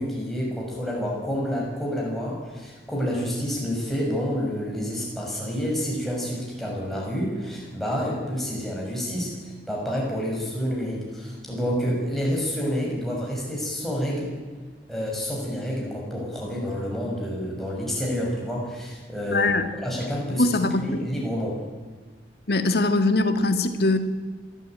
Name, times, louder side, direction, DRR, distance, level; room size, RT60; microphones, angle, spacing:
voice 1, 0.0-14.4 14.9-19.5 19.8-20.5 20.8-21.6, equal, ahead, -4 dB, 6.3 m, -28 dB
voice 2, 19.3-19.7 20.4-20.8 22.5-24.0, left 2 dB, 65° left, 8 dB, 1.8 m, -21 dB
26.0 x 13.0 x 9.0 m, 1.4 s
head